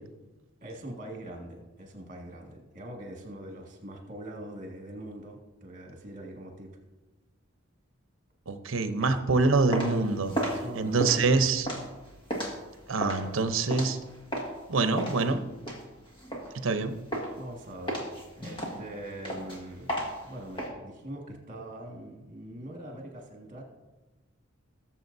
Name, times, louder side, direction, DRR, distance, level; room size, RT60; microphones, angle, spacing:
voice 1, 0.6-6.7 9.0-9.2 10.4-11.6 17.4-18.1 18.4-23.6, right 1 dB, 40° right, 1 dB, 1.8 m, -43 dB
voice 2, 8.5-10.4 10.8-11.7 12.9-14.0 14.7-15.4 16.6-16.9, right 3 dB, 75° right, 9 dB, 0.8 m, -25 dB
sound 1, 9.4-14.6 15.0-16.8 17.1-17.5 17.9-20.7, right 1 dB, 25° left, 1.8 m, -34 dB
18.0 x 7.5 x 2.7 m, 1.1 s
head